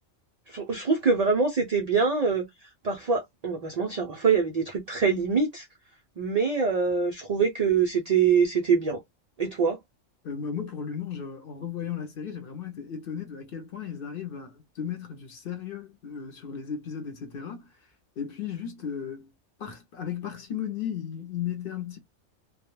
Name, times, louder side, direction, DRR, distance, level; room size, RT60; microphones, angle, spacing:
voice 1, 0.5-2.5 2.8-5.7 6.2-9.0 9.4-9.8, right 5 dB, 80° right, 0.3 m, -24 dB
voice 2, 10.2-17.7 18.2-19.3 19.6-22.0, left 8 dB, 55° left, 0.7 m, -35 dB
2.2 x 2.1 x 2.9 m
omnidirectional pair, 1.3 m